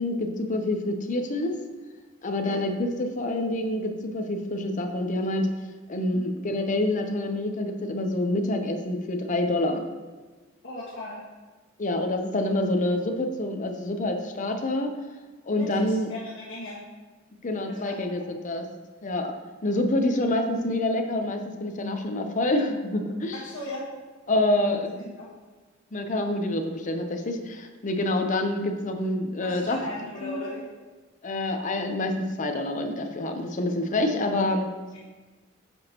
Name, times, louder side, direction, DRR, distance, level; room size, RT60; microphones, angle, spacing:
voice 1, 0.0-1.5 2.2-5.5 5.9-9.8 11.8-14.9 15.5-16.1 17.4-18.7 19.0-19.3 19.6-23.4 24.3-24.9 25.9-29.8 30.2-30.4 31.2-34.7, left 1 dB, 40° left, 4 dB, 0.7 m, -27 dB
voice 2, 6.1-6.5 10.6-11.2 15.5-16.8 17.7-18.2 23.3-23.8 25.0-25.3 29.4-30.6, left 1 dB, 65° left, -7 dB, 1.5 m, -38 dB
10.0 x 6.2 x 2.9 m, 1.3 s
head